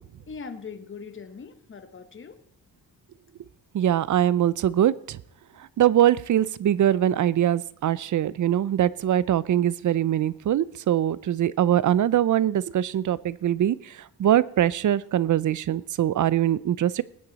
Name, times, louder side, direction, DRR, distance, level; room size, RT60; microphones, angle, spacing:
voice 1, 0.3-2.4, left 5 dB, 35° left, 9 dB, 1.2 m, -40 dB
voice 2, 3.7-5.2 5.8-13.8 14.2-17.0, right 11 dB, 55° right, 20 dB, 0.5 m, -22 dB
20.5 x 8.7 x 4.0 m, 0.73 s
wide cardioid pair, 125°, 37 cm